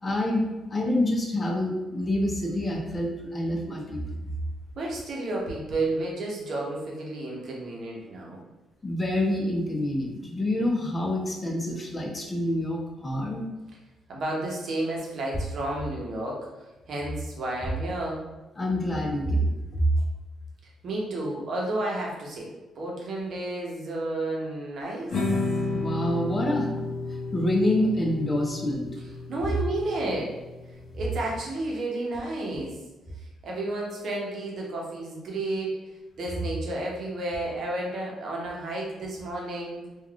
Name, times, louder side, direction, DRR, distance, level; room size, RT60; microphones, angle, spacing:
voice 1, 0.0-4.0 8.8-13.4 18.6-19.9 25.7-26.7 27.1-28.9, left 1 dB, 25° left, 1 dB, 0.6 m, -27 dB
voice 2, 4.8-8.4 14.1-16.5 16.9-18.2 20.8-22.5 22.8-25.1 29.3-30.3 30.9-32.8 33.4-35.8 36.2-39.8, right 2 dB, 60° right, -2 dB, 0.8 m, -31 dB
sound 1, 25.1-31.4, left 3 dB, 65° left, 0.6 m, -32 dB
3.3 x 2.4 x 2.4 m, 1.1 s
cardioid pair, 90°, 0 cm